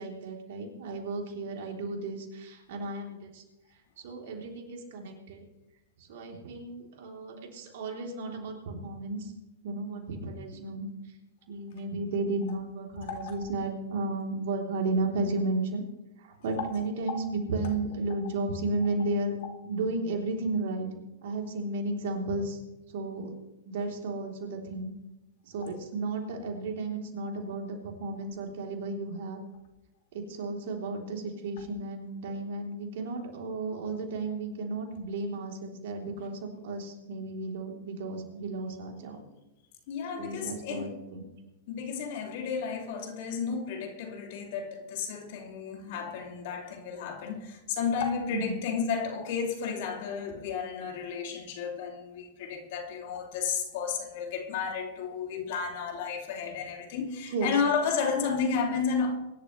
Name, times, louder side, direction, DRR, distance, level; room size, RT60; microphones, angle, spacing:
voice 1, 0.0-3.4 4.0-5.5 6.0-9.3 9.6-10.9 11.5-15.8 16.2-19.3 19.6-20.9 21.2-22.6 22.9-23.3 23.6-24.9 25.4-29.4 30.1-39.2 40.2-41.2 48.3-48.6 57.3-57.5, right 2 dB, 60° right, 3.3 m, -33 dB
voice 2, 13.0-13.4 16.5-16.7 17.6-17.7 18.8-18.9 39.9-41.0 41.7-59.1, left 6 dB, 60° left, 2.7 m, -32 dB
23.5 x 11.5 x 3.2 m
hypercardioid pair, 105°, 0 cm